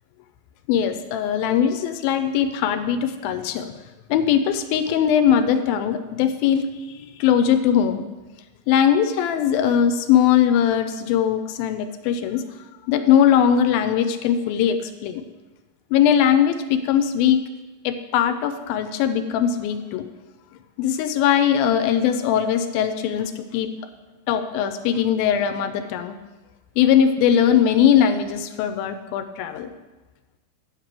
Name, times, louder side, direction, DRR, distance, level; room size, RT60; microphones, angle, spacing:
voice 1, 0.7-3.7 4.1-8.0 8.7-12.4 12.9-15.2 15.9-17.4 17.8-20.0 20.8-23.7 24.3-26.2 26.8-29.7, left 9 dB, 80° left, 9 dB, 2.3 m, -20 dB
9.3 x 4.7 x 7.4 m, 1.2 s
omnidirectional pair, 4.3 m